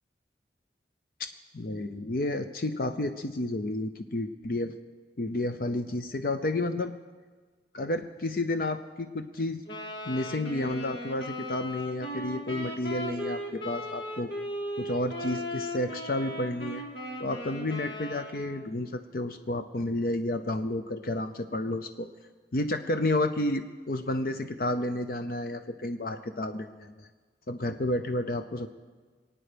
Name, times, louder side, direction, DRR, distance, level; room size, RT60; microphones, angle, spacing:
voice 1, 1.5-4.7 5.2-6.9 7.7-9.6 10.1-14.3 14.8-16.8 17.2-22.1 22.5-27.1 27.5-28.7, left 1 dB, 50° left, 8 dB, 0.6 m, -31 dB
Wind instrument woodwind instrument, 9.7-18.7, left 1 dB, 75° left, 2.4 m, -37 dB
23.5 x 9.0 x 5.1 m, 1.4 s
head